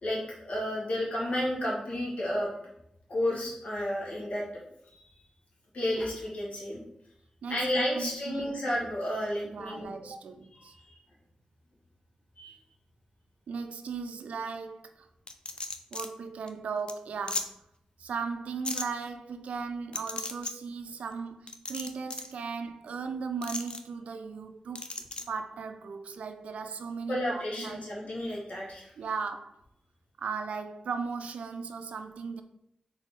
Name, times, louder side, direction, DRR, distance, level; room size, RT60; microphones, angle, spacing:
voice 1, 0.0-2.5 3.1-4.4 5.7-6.8 7.5-9.9 10.7-11.0 12.4-12.6 27.1-28.9, left 1 dB, 70° left, 1.7 m, -31 dB
voice 2, 7.4-8.6 9.4-10.7 13.5-15.1 15.9-17.6 18.0-24.9 25.3-27.8 29.0-29.6 30.2-32.4, right 5 dB, 85° right, 0.4 m, -37 dB
sound 1, 15.3-16.1 16.5-16.6 16.9-17.0 17.3-17.4 18.6-18.8 19.9-20.5 21.5-22.3 23.4-23.8 24.7-25.2, left 3 dB, 45° left, 0.5 m, -35 dB
4.1 x 3.5 x 3.6 m
cardioid pair, 45°, 2 cm